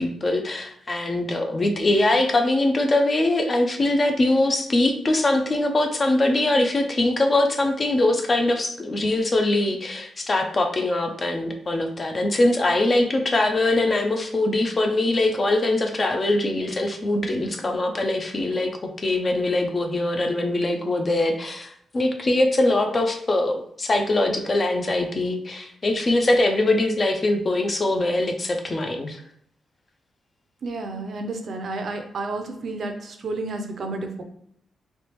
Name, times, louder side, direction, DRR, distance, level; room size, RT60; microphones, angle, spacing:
voice 1, 0.0-18.7 19.0-29.2, left 2 dB, 30° left, 4 dB, 0.4 m, -22 dB
voice 2, 30.6-34.2, right 3 dB, 50° right, 5 dB, 0.5 m, -31 dB
3.3 x 3.0 x 2.9 m, 0.68 s
wide cardioid pair, 155°, 0 cm